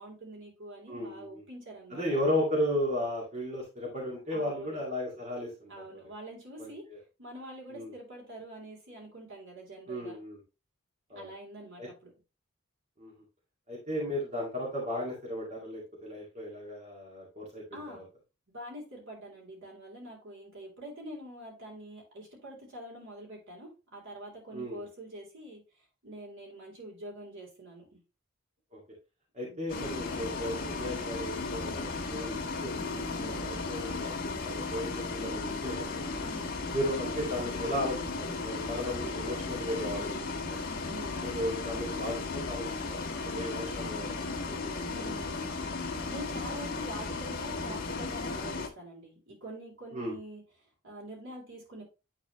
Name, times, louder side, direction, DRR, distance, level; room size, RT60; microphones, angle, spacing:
voice 1, 0.0-2.0 4.3-4.8 5.7-6.8 7.2-10.2 11.1-12.1 17.7-18.0 18.5-25.6 26.0-28.0 29.4-29.7 33.1-33.4 36.2-36.5 39.9-40.4 40.9-41.2 44.8-45.5 46.1-50.4 50.8-51.8, right 1 dB, 65° right, -2 dB, 3.3 m, -45 dB
voice 2, 0.9-1.4 1.9-6.1 6.6-7.0 7.7-7.9 9.9-10.4 11.1-11.3 11.8-11.9 13.0-13.1 13.7-18.0 24.5-24.8 28.7-28.8 29.3-36.1 36.7-40.4 41.2-44.1 44.4-45.1 49.9-50.2, left 1 dB, 35° right, -4 dB, 2.1 m, -35 dB
Bus, 29.7-48.7, left 3 dB, 45° left, 1.5 m, -35 dB
9.2 x 4.1 x 3.1 m, 0.29 s
head